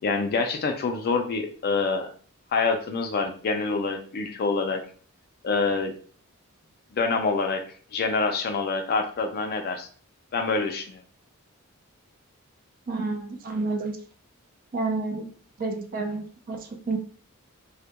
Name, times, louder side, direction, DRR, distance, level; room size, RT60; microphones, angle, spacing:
voice 1, 0.0-2.1 2.5-4.8 5.4-5.9 6.9-7.6 7.9-9.9 10.3-11.0, left 4 dB, 45° left, 5 dB, 0.4 m, -26 dB
voice 2, 12.9-14.0 14.7-15.3 15.6-17.0, right 3 dB, 40° right, 4 dB, 0.4 m, -30 dB
2.2 x 2.1 x 2.8 m, 0.43 s
head